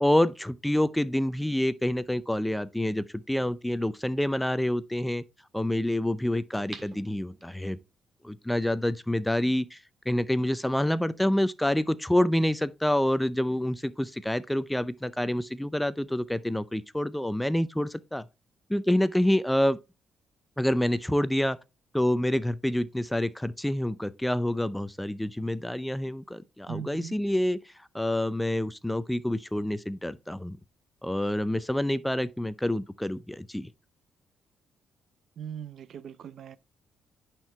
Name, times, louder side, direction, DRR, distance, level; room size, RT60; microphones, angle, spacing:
voice 1, 0.0-5.2 5.5-7.8 8.2-9.8 10.1-18.2 18.7-19.8 20.6-21.6 21.9-27.6 27.9-30.6 31.0-33.7, left 1 dB, 5° left, 0.5 m, -27 dB
sound 1, 6.5-7.9 8.4-8.5, right 4 dB, 40° right, 1.8 m, -46 dB
voice 2, 26.7-27.2 35.4-36.6, right 8 dB, 65° right, 0.5 m, -39 dB
10.5 x 4.6 x 3.3 m
cardioid pair, 90°, 0 cm